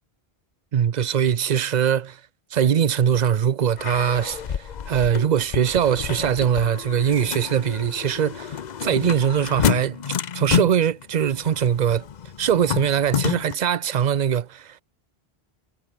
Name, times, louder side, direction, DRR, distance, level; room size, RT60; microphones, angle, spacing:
voice 1, 0.7-2.2 2.5-12.1 12.4-14.8, right 8 dB, 50° right, 0.7 m, -22 dB
sound 1, 3.8-13.5, left 8 dB, 50° left, 0.7 m, -29 dB
omnidirectional pair, 1.1 m